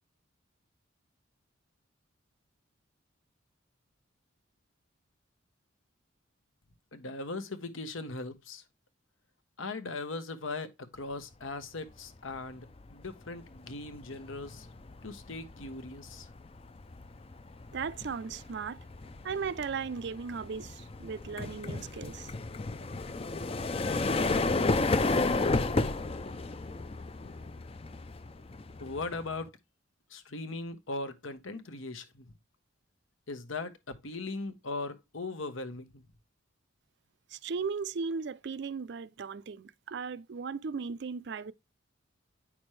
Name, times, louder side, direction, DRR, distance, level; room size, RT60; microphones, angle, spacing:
voice 1, 6.9-8.6 9.6-14.7 15.0-16.3 28.8-29.5 30.1-32.3 33.3-36.0, left 3 dB, 75° left, 1.1 m, -39 dB
sound 1, 12.1-12.4 12.7-29.5, left 3 dB, 30° left, 0.5 m, -33 dB
voice 2, 17.7-18.8 19.2-22.3 37.3-41.5, right 5 dB, 55° right, 0.4 m, -37 dB
8.8 x 6.1 x 3.2 m
head